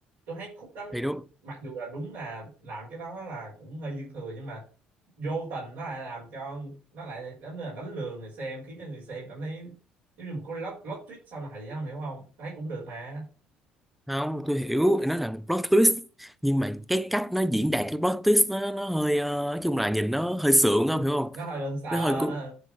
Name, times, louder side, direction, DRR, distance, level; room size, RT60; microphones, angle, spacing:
voice 1, 0.3-1.0 1.4-4.6 5.2-9.7 10.2-13.3 21.3-22.5, right 2 dB, 75° right, 4.7 m, -37 dB
voice 2, 14.1-21.4 21.9-22.4, equal, ahead, 0.8 m, -25 dB
9.7 x 3.8 x 6.0 m
hypercardioid pair, 55°, 4 cm